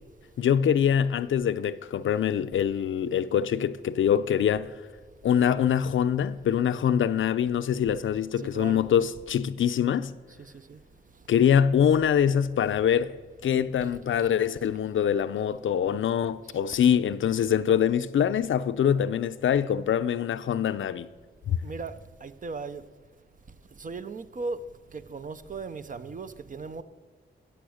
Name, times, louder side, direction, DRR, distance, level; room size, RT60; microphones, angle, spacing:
voice 1, 0.4-4.7 5.2-10.1 11.3-13.1 13.4-21.1 21.5-21.6, left 8 dB, 85° left, 0.5 m, -24 dB
voice 2, 8.4-8.9 10.3-10.8 13.5-13.9 14.2-14.3 16.4-16.6 21.5-21.9 22.2-22.8 23.7-24.6 24.9-26.8, right 4 dB, 45° right, 0.7 m, -38 dB
17.0 x 7.1 x 6.4 m
wide cardioid pair, 130°, 20 cm